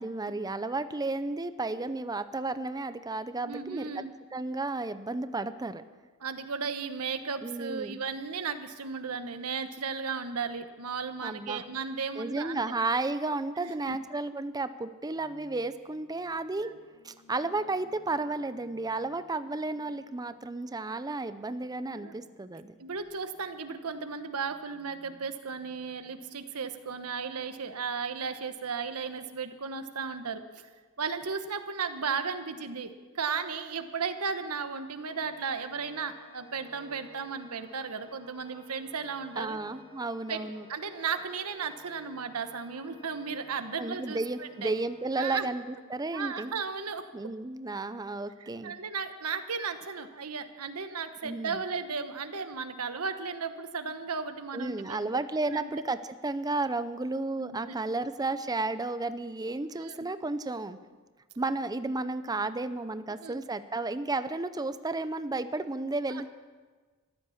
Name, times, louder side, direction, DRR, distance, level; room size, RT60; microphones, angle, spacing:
voice 1, 0.0-3.9 4.3-5.9 7.4-8.0 11.2-11.6 12.2-16.7 17.0-22.7 39.4-40.6 43.8-46.5 47.1-48.7 51.2-51.6 54.5-56.0 56.2-60.8 61.4-66.3, right 2 dB, 15° right, 12 dB, 0.5 m, -33 dB
voice 2, 3.4-4.1 6.2-12.6 13.6-14.0 16.6-16.7 21.9-22.1 22.8-30.7 31.0-39.6 40.3-40.4 40.7-44.7 45.2-45.5 46.1-47.0 48.4-55.0 55.5-55.7 57.4-57.7 59.8-60.1 63.2-63.4 66.1-66.2, right 5 dB, 80° right, 9 dB, 1.1 m, -35 dB
sound 1, 15.1-27.3, equal, 60° left, 4.7 m, -62 dB
Organ, 35.0-45.7, left 2 dB, 20° left, 1.6 m, -56 dB
14.5 x 12.5 x 7.2 m, 1.4 s
head